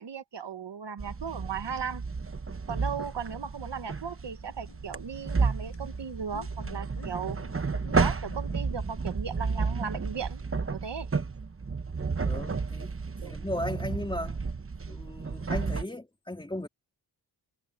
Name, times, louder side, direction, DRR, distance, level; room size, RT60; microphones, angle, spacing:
voice 1, 0.0-2.0 2.7-7.4 8.0-10.4 10.7-11.1 13.2-13.3, right 6 dB, 70° right, 1.4 m, -36 dB
sound 1, 1.0-15.8, right 4 dB, 30° right, 1.0 m, -32 dB
sound 2, 3.2-9.3, left 6 dB, 75° left, 6.3 m, -53 dB
voice 2, 12.2-12.9 13.2-14.4 14.9-16.7, left 1 dB, 10° left, 2.6 m, -36 dB
wide cardioid pair, 115°, 43 cm